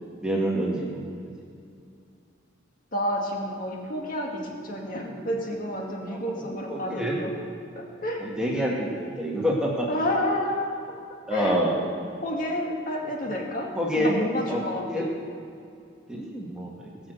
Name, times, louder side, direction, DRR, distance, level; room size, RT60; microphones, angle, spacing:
voice 1, 0.2-1.3 6.1-6.2 6.7-7.2 8.2-9.9 11.3-11.7 13.8-14.1 14.5-15.1 16.1-16.9, equal, 5° right, -3 dB, 1.9 m, -27 dB
voice 2, 2.9-7.3 7.8-8.2 9.9-11.0 11.3-11.6 12.2-15.1, equal, 45° left, -1 dB, 2.1 m, -30 dB
18.5 x 6.6 x 8.0 m, 2.5 s
head